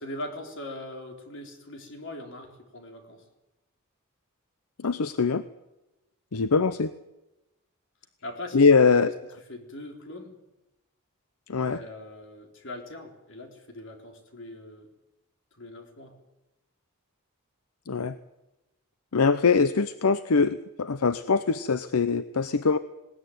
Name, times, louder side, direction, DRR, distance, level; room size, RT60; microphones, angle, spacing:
voice 1, 0.0-3.2 8.2-8.6 8.9-9.1 9.5-10.4 11.6-14.9 15.5-16.2, left 1 dB, 60° left, 4 dB, 3.8 m, -41 dB
voice 2, 4.8-5.4 6.3-6.9 8.5-9.1 11.5-11.8 17.9-18.2 19.1-22.8, left 4 dB, 80° left, 13 dB, 0.7 m, -22 dB
20.0 x 18.0 x 9.4 m, 0.97 s
head